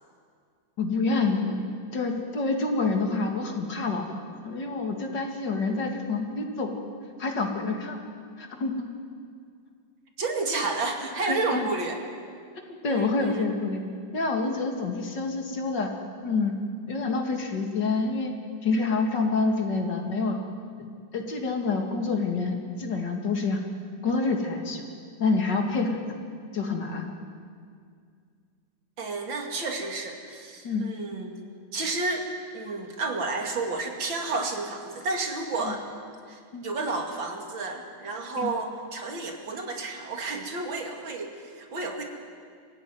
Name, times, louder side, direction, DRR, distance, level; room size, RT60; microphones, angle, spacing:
voice 1, 0.8-1.6 1.9-6.7 7.2-8.0 8.4-8.9 11.3-11.7 12.8-13.8 14.1-15.9 16.2-16.6 16.9-18.3 18.6-20.4 20.8-20.9 21.1-23.6 24.0-24.9 25.2-26.0 26.5-27.1 30.6-30.9 35.6-35.8 36.5-36.7 38.4-38.5, left 3 dB, 65° left, 2 dB, 3.0 m, -27 dB
voice 2, 10.2-12.0 12.9-13.5 29.0-31.4 31.7-32.3 32.5-35.8 36.3-42.0, right 3 dB, 90° right, 2 dB, 3.1 m, -31 dB
24.0 x 15.5 x 9.5 m, 2.2 s
omnidirectional pair, 2.0 m